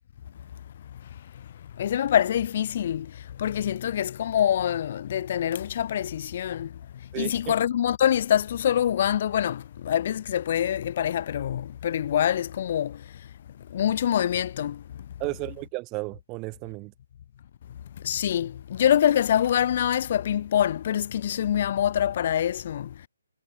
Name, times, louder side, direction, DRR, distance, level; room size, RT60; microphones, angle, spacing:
voice 1, 1.8-3.0 3.4-6.7 7.2-12.9 13.7-14.8 18.0-22.9, left 10 dB, 40° left, 3.3 m, -25 dB
voice 2, 7.1-7.5 15.2-16.9, right 25 dB, 20° right, 3.5 m, -33 dB
figure-of-eight pair, 145°, 0 cm